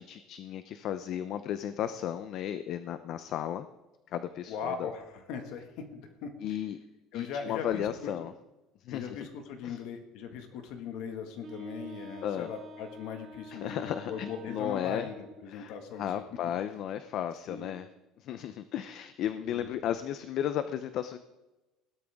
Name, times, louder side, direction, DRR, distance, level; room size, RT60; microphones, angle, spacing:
voice 1, 0.0-3.7 4.1-4.9 6.4-6.8 7.1-8.3 8.8-9.3 9.6-9.8 12.2-12.5 13.5-15.1 15.5-17.9 18.2-21.2, left 10 dB, 45° left, 11 dB, 0.6 m, -34 dB
voice 2, 4.5-6.3 7.1-8.1 8.9-16.2 17.5-17.7 19.4-19.7, left 6 dB, 65° left, 5 dB, 1.8 m, -39 dB
Wind instrument woodwind instrument, 11.4-15.5, right 1 dB, 35° right, 2.4 m, -47 dB
16.5 x 13.0 x 3.6 m, 1.0 s
cardioid pair, 165°, 0 cm